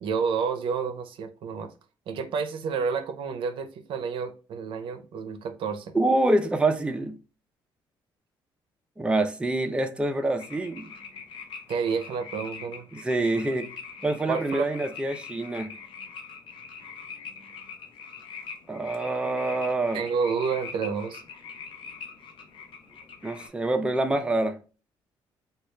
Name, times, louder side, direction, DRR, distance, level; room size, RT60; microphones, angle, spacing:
voice 1, 0.0-1.7 2.1-5.9 11.7-12.9 14.3-14.7 19.9-21.2, right 6 dB, 65° right, 0.5 m, -30 dB
voice 2, 5.9-7.2 9.0-10.8 12.9-13.7 14.0-15.7 18.7-20.0 23.2-24.6, right 2 dB, 10° right, 0.5 m, -26 dB
sound 1, 10.4-23.5, left 6 dB, 65° left, 0.7 m, -43 dB
3.1 x 2.3 x 3.1 m
cardioid pair, 85°, 9 cm